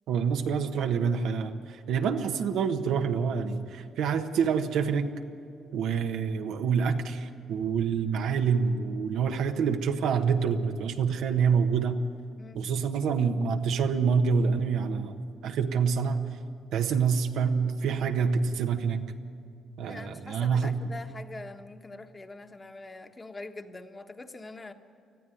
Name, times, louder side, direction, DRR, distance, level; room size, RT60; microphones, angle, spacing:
voice 1, 0.1-5.1 5.7-12.0 12.5-15.1 15.4-16.2 16.7-19.0 19.8-20.8, right 6 dB, 85° right, 5 dB, 1.3 m, -27 dB
voice 2, 19.9-24.7, left 2 dB, 25° left, 5 dB, 1.4 m, -44 dB
20.0 x 14.0 x 9.4 m, 2.5 s
cardioid pair, 90°, 0 cm